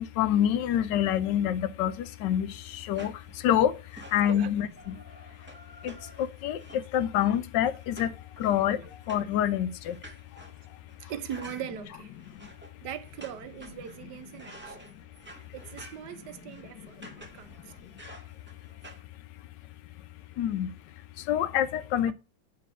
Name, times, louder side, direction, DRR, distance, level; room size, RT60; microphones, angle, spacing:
voice 1, 0.0-2.5 2.7-3.1 3.4-3.7 4.1-4.9 5.8-8.1 8.4-8.8 9.1-10.0 20.4-20.7 21.3-22.1, left 10 dB, 80° left, 1.2 m, -26 dB
sound 1, 2.0-19.0, right 1 dB, 10° right, 0.7 m, -51 dB
voice 2, 11.0-12.1 12.8-14.9 15.5-17.7, right 9 dB, 70° right, 1.2 m, -40 dB
7.2 x 3.3 x 5.9 m
omnidirectional pair, 1.9 m